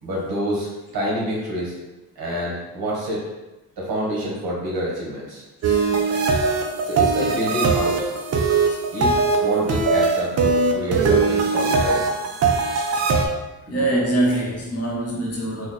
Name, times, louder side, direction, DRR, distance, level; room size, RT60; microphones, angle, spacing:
voice 1, 0.0-1.9 2.2-3.2 3.8-5.4 6.8-8.1 8.9-12.0 13.7-13.8, equal, 85° right, -4 dB, 1.3 m, -27 dB
sound 1, 5.6-13.2, right 4 dB, 45° right, 0.4 m, -20 dB
voice 2, 13.7-15.7, right 1 dB, 40° left, -4 dB, 0.9 m, -24 dB
3.4 x 2.2 x 3.8 m, 1.0 s
wide cardioid pair, 150°, 36 cm